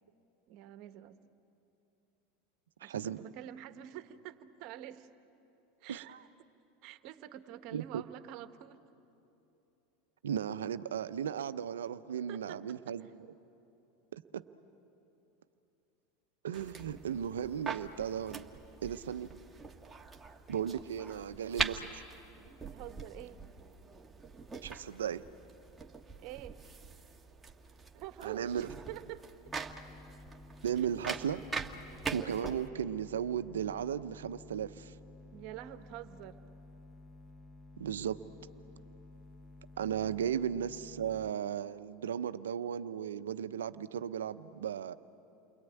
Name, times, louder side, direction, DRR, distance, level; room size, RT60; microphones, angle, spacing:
voice 1, 0.5-1.2 2.8-5.1 5.8-6.5 6.8-8.8 12.3-13.1 22.6-23.4 26.2-26.6 27.9-29.2 29.6-29.7 30.8-30.9 35.3-36.4, right 13 dB, 60° right, 9 dB, 1.3 m, -47 dB
voice 2, 5.9-6.2 7.7-8.0 10.2-13.1 14.1-14.4 16.4-18.5 18.8-19.4 20.5-22.0 24.6-25.2 28.2-28.7 30.6-31.4 32.1-34.9 37.8-38.2 39.8-44.9, right 9 dB, 85° right, 12 dB, 0.7 m, -36 dB
sound 1, 16.5-32.7, right 4 dB, 15° right, 1.6 m, -43 dB
sound 2, 29.5-41.3, left 2 dB, 15° left, 1.0 m, -53 dB
29.5 x 22.0 x 9.2 m, 2.9 s
hypercardioid pair, 95°, 0 cm